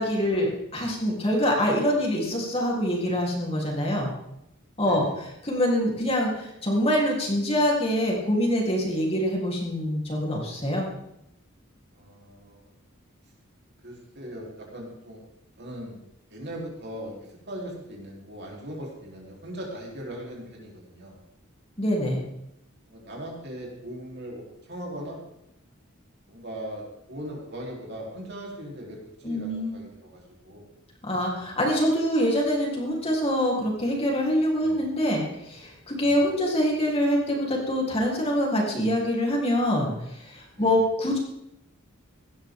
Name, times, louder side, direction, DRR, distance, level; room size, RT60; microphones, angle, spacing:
voice 1, 0.0-4.1 4.8-5.0 5.4-10.8 21.8-22.2 29.2-29.8 31.0-41.2, equal, 30° left, -2 dB, 3.6 m, -25 dB
voice 2, 0.8-1.2 3.7-3.8 4.8-5.1 11.9-12.7 13.8-15.2 15.6-16.0 16.3-21.2 22.9-25.2 26.3-30.7 34.6-34.8 36.0-36.2 39.6-39.7 40.5-40.7, equal, 55° right, -2 dB, 3.9 m, -39 dB
17.0 x 12.5 x 3.8 m, 0.82 s
head